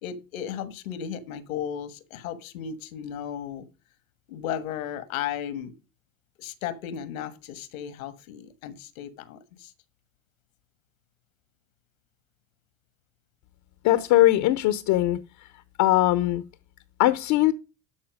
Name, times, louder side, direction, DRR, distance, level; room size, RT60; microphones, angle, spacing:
voice 1, 0.0-3.7 4.3-5.7 6.4-9.7, left 9 dB, 85° left, 1.5 m, -35 dB
voice 2, 13.8-15.2 15.8-16.4 17.0-17.5, left 15 dB, 60° left, 0.9 m, -20 dB
12.5 x 4.4 x 6.3 m
hypercardioid pair, 85°, 41 cm